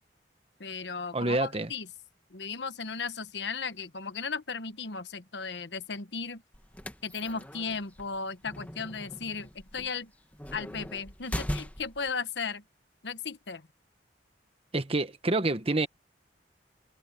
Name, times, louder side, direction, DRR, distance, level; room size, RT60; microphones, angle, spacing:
voice 1, 0.6-1.9 2.3-6.4 7.0-10.1 10.5-12.6 13.0-13.7, left 5 dB, 80° left, 1.1 m, -36 dB
voice 2, 1.1-1.7 14.7-15.9, right 2 dB, 35° right, 1.2 m, -27 dB
sound 1, 6.5-12.1, equal, 10° left, 1.4 m, -39 dB
head